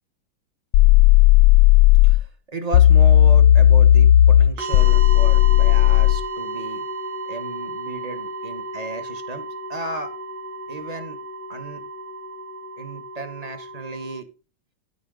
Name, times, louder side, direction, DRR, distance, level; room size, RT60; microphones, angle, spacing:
sound 1, 0.7-2.2 2.7-6.2, left 13 dB, 85° left, 1.5 m, -13 dB
voice 1, 2.0-6.9 7.3-10.2 10.7-11.2 11.5-11.8 12.8-14.3, right 2 dB, 25° right, 7 dB, 1.0 m, -34 dB
sound 2, 4.6-14.2, right 2 dB, 80° right, 3.0 m, -33 dB
14.0 x 4.7 x 3.7 m, 0.32 s
omnidirectional pair, 2.3 m